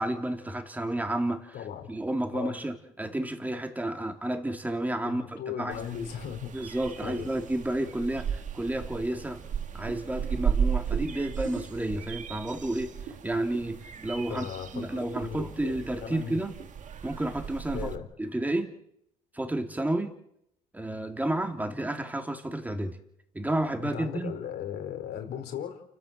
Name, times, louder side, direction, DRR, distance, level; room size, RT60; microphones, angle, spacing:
voice 1, 0.0-6.1 6.5-9.4 9.7-12.9 13.2-14.5 14.7-16.6 17.0-17.9 18.2-18.7 19.3-20.2 20.7-23.0 23.3-24.4, right 1 dB, 10° right, 4 dB, 3.2 m, -31 dB
voice 2, 1.5-1.9 2.3-2.6 5.0-6.7 7.0-7.3 14.3-15.7 16.0-16.4 17.7-18.1 23.8-25.8, left 9 dB, 70° left, 6 dB, 4.6 m, -37 dB
sound 1, 5.7-18.0, right 7 dB, 45° right, 1.9 m, -35 dB
sound 2, 10.1-14.5 14.8-16.7, right 8 dB, 80° right, 3.5 m, -45 dB
29.5 x 14.0 x 7.7 m, 0.76 s
cardioid pair, 110°, 17 cm